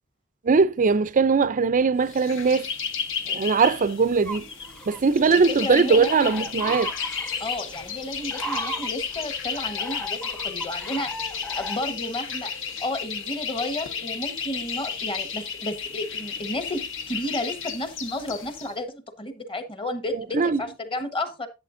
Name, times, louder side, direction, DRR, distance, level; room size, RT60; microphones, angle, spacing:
voice 1, 0.4-2.7 3.3-4.5 4.9-6.9 20.3-20.6, right 5 dB, 35° right, 0.5 m, -20 dB
sound 1, 2.1-18.7, left 6 dB, 60° left, 1.1 m, -33 dB
sound 2, 4.3-11.8, right 1 dB, 5° left, 0.7 m, -37 dB
voice 2, 5.3-6.8 7.4-12.5 12.8-21.5, left 1 dB, 25° left, 1.3 m, -32 dB
11.0 x 8.8 x 2.6 m
head